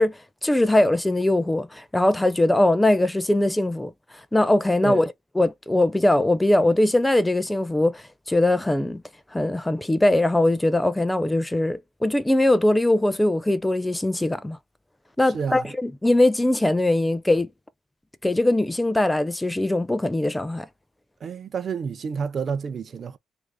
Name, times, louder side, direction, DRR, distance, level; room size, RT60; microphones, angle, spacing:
voice 1, 0.0-3.9 4.3-9.0 9.3-14.6 15.2-17.5 18.2-20.7, left 1 dB, 10° left, 0.4 m, -21 dB
voice 2, 15.3-15.7 21.2-23.2, right 6 dB, 50° right, 0.5 m, -29 dB
2.8 x 2.6 x 3.4 m
cardioid pair, 90°, 0 cm